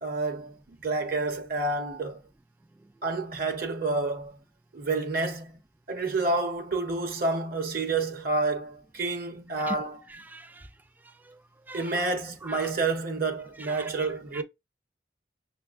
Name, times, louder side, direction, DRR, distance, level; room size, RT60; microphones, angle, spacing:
voice 1, 0.0-2.2 3.0-4.4 4.7-5.5 5.9-10.0 11.7-14.4, right 3 dB, 50° right, 0.8 m, -29 dB
voice 2, 10.1-10.7 11.3-11.4 11.7-12.0 12.4-12.7 13.7-13.9 14.3-14.4, right 2 dB, 10° right, 0.3 m, -40 dB
6.0 x 2.1 x 2.4 m
head